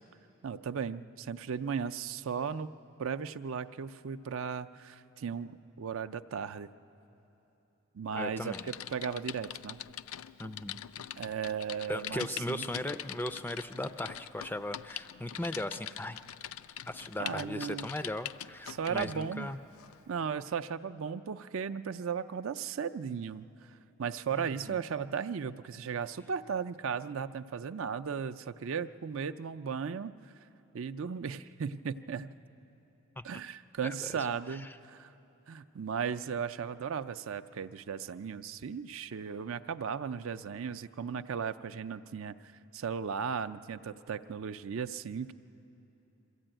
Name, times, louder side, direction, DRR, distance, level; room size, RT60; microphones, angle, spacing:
voice 1, 0.4-2.7 3.0-6.7 7.9-9.8 11.2-12.7 17.2-17.9 18.7-19.5 20.1-23.7 24.0-30.1 30.7-32.3 33.2-35.1 35.5-42.3 42.7-45.3, right 6 dB, 65° right, 11 dB, 0.4 m, -36 dB
voice 2, 8.1-8.7 10.4-10.8 11.9-16.2 16.9-19.6 24.3-24.8 33.2-33.3 33.8-34.8, left 1 dB, 10° left, 11 dB, 0.4 m, -38 dB
Typing, 8.5-19.2 19.8-20.0, left 11 dB, 75° left, 0.4 m, -43 dB
22.5 x 14.5 x 8.9 m, 3.0 s
head